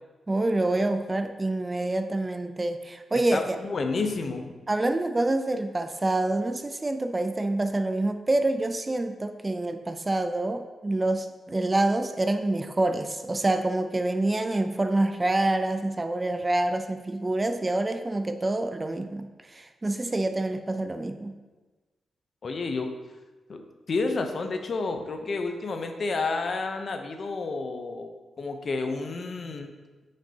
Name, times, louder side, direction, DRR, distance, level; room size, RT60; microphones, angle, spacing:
voice 1, 0.3-3.6 4.7-21.4, right 2 dB, 25° right, 8 dB, 0.5 m, -27 dB
voice 2, 3.3-4.5 22.4-22.9 23.5-23.6 23.9-28.1 28.4-29.7, left 3 dB, 55° left, 5 dB, 0.7 m, -30 dB
8.9 x 5.3 x 2.8 m, 1.3 s
cardioid pair, 85°, 0 cm